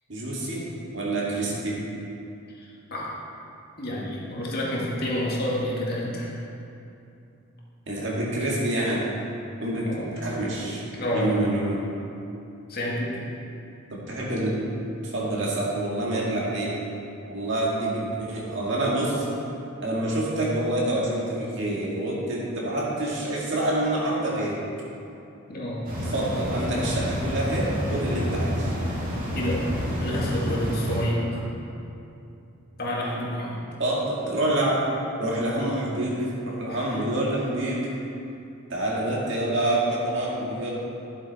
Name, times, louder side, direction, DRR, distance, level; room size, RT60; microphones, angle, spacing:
voice 1, 0.1-0.7 0.9-1.8 7.9-9.1 9.6-9.9 10.2-10.8 11.1-11.8 13.9-14.6 15.0-16.7 17.3-19.3 19.8-24.6 26.1-28.7 33.8-34.9 35.2-37.9 38.7-40.7, right 1 dB, 55° right, -5 dB, 2.1 m, -27 dB
voice 2, 2.6-3.2 3.8-6.3 9.9-10.3 10.9-11.4 12.7-13.3 25.5-25.9 29.3-29.7 30.0-31.4 32.8-33.6 36.7-36.9, equal, 45° left, -5 dB, 1.9 m, -29 dB
sound 1, 25.8-31.0, equal, 40° right, 2.4 m, -29 dB
11.5 x 8.0 x 4.2 m, 2.7 s
head